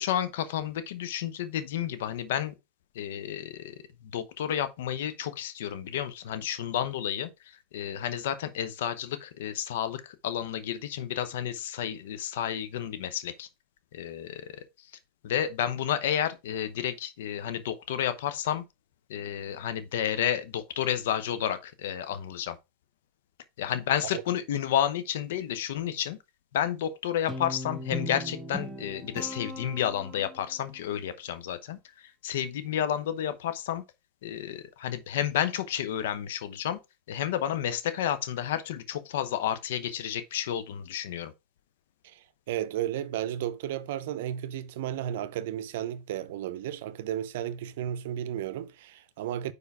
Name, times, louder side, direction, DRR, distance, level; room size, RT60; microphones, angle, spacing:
voice 1, 0.0-2.5 2.9-3.8 4.1-13.5 13.9-14.5 15.2-18.6 19.1-22.6 23.6-26.2 26.5-33.8 34.2-36.8 37.1-41.3, left 10 dB, 75° left, 0.9 m, -31 dB
Guitar, 27.3-30.6, equal, 5° left, 1.8 m, -38 dB
voice 2, 42.5-49.5, right 11 dB, 75° right, 0.6 m, -33 dB
4.9 x 4.9 x 4.7 m
hypercardioid pair, 110°, 0 cm